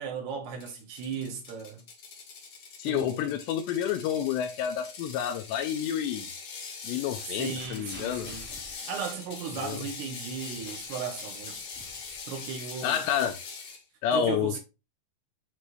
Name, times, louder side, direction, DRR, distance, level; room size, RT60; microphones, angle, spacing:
voice 1, 0.0-1.8 2.9-3.3 7.3-11.6 12.3-13.0 14.1-14.6, right 6 dB, 70° right, 3.0 m, -36 dB
Ratchet pawl, 0.6-13.8, left 5 dB, 65° left, 1.6 m, -42 dB
voice 2, 2.8-6.3 6.8-8.3 9.6-9.8 12.8-13.3 14.0-14.6, left 9 dB, 80° left, 2.7 m, -29 dB
sound 1, 7.6-9.8 10.2-12.8 13.7-13.8, right 1 dB, 35° right, 1.2 m, -51 dB
9.6 x 3.3 x 3.2 m
omnidirectional pair, 5.4 m